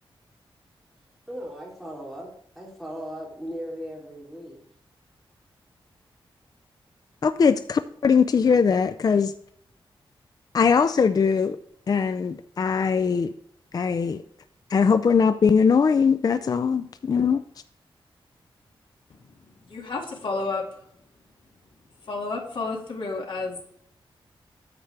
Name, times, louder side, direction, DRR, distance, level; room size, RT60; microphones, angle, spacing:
voice 1, 1.3-4.6 8.4-8.6, equal, ahead, -4 dB, 3.1 m, -37 dB
voice 2, 7.2-9.3 10.5-11.6 11.9-13.3 13.7-14.2 14.7-17.4, left 6 dB, 45° left, 11 dB, 0.4 m, -21 dB
voice 3, 19.1-20.6 22.0-23.6, left 3 dB, 65° left, 0 dB, 2.1 m, -31 dB
9.6 x 7.9 x 3.4 m, 0.67 s
wide cardioid pair, 115°, 9 cm